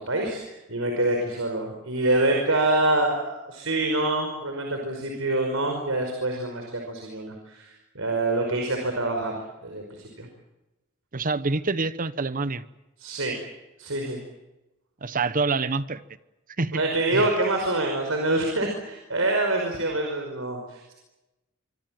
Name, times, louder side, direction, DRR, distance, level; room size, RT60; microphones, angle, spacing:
voice 1, 0.0-10.3 13.0-13.3 13.8-14.2 16.7-20.9, right 2 dB, 90° right, 5.3 m, -26 dB
voice 2, 11.1-12.6 15.0-16.0 16.6-16.9 17.1-17.2, right 3 dB, 45° right, 1.0 m, -26 dB
26.0 x 25.0 x 7.7 m
head